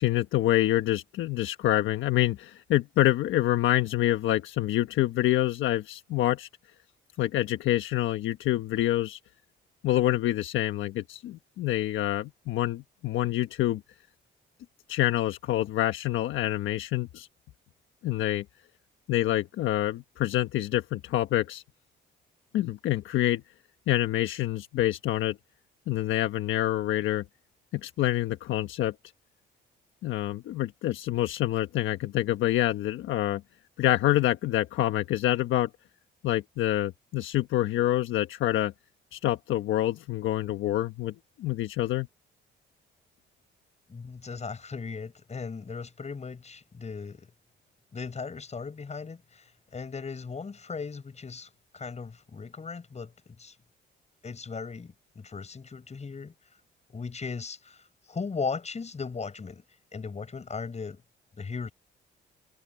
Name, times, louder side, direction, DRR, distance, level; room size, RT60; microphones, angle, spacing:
voice 1, 0.0-6.5 7.2-9.2 9.8-13.8 14.9-17.3 18.0-18.4 19.1-21.6 22.5-23.4 23.9-25.4 25.9-27.2 27.8-28.9 30.0-33.4 33.8-35.7 36.2-38.7 39.1-41.1 41.4-42.1, left 14 dB, 85° left, 1.2 m, -26 dB
voice 2, 43.9-47.3 47.9-53.5 54.2-56.3 56.9-57.8 58.1-59.6 59.9-61.0 61.4-61.7, left 5 dB, 35° left, 7.8 m, -37 dB
cardioid pair, 90°, 20 cm